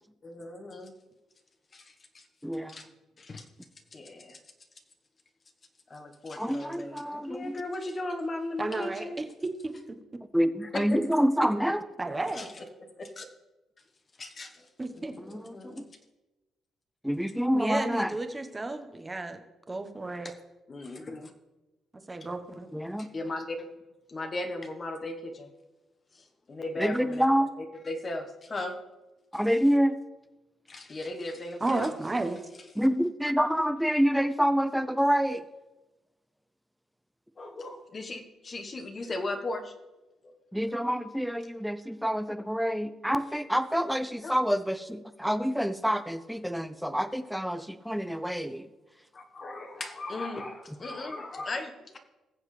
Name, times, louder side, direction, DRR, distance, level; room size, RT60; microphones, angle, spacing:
voice 1, 0.2-1.0 1.7-2.3 2.7-2.9 3.2-3.4 3.9-4.4 5.9-9.2 10.9-11.0 12.3-13.3 14.2-14.7 14.9-15.9 20.2-20.3 20.7-21.3 23.0-23.7 24.1-25.5 26.1-27.3 27.6-28.8 30.7-31.9 37.4-39.7 40.2-40.3 44.2-44.3 49.1-52.0, left 2 dB, 35° left, 5 dB, 1.3 m, -37 dB
voice 2, 2.4-2.8 6.4-7.6 10.3-11.8 15.2-15.9 17.0-18.1 22.7-23.1 26.8-27.5 29.3-30.0 32.8-35.4 40.5-48.7, equal, ahead, 12 dB, 0.6 m, -27 dB
voice 3, 8.6-10.0 12.0-12.5 14.8-15.1 17.5-19.4 19.7-20.3 22.1-22.7 31.6-32.4, right 2 dB, 20° right, 7 dB, 1.1 m, -33 dB
20.0 x 7.2 x 3.3 m, 1.1 s
cardioid pair, 90°, 0 cm